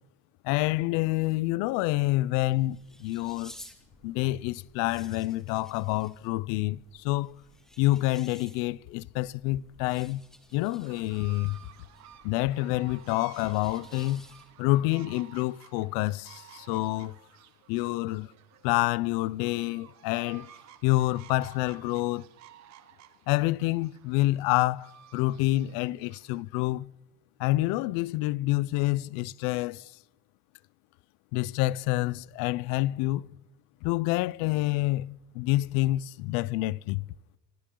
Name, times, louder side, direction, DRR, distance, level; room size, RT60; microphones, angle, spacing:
voice 1, 0.4-3.5 4.0-7.4 7.8-10.2 10.5-11.6 12.2-14.3 14.6-17.1 17.7-18.3 18.6-20.5 20.8-22.2 23.3-26.9 27.4-29.9 31.3-33.3 33.8-37.0, left 18 dB, 70° left, 0.6 m, -28 dB
sound 1, 2.0-14.7, equal, ahead, 2.1 m, -55 dB
sound 2, 10.8-26.4, right 11 dB, 50° right, 1.7 m, -54 dB
27.0 x 26.0 x 3.9 m
cardioid pair, 155°, 35 cm